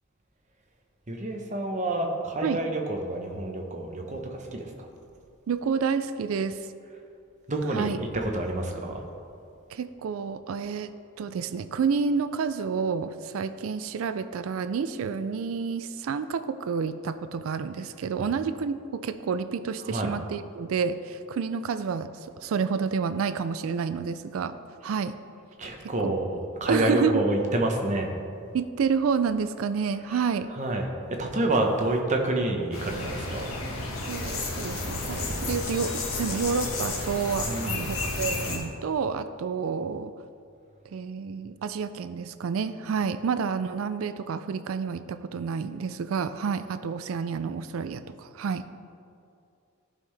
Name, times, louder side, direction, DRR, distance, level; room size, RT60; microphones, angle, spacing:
voice 1, 1.1-4.9 7.5-9.0 18.2-18.3 19.9-20.1 25.6-28.1 30.1-30.3 30.5-33.5 37.5-37.9, right 1 dB, 35° right, 2 dB, 0.9 m, -28 dB
voice 2, 5.5-6.7 7.7-8.0 9.7-24.5 24.8-25.1 25.8-26.2 26.7-27.2 28.5-30.5 34.1-40.1 40.9-48.7, right 5 dB, 75° right, 12 dB, 0.4 m, -29 dB
sound 1, 32.7-38.6, left 2 dB, 80° left, 1.5 m, -32 dB
14.0 x 5.6 x 3.4 m, 2.5 s
head